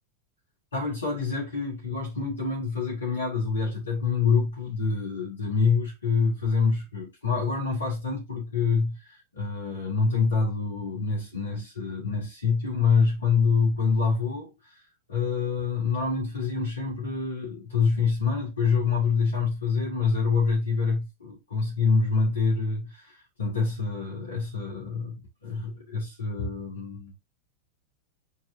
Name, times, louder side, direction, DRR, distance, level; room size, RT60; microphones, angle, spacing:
voice 1, 0.7-14.8 15.1-27.1, left 5 dB, 75° left, 2.5 m, -26 dB
8.1 x 4.2 x 2.8 m
figure-of-eight pair, 90°, 0 cm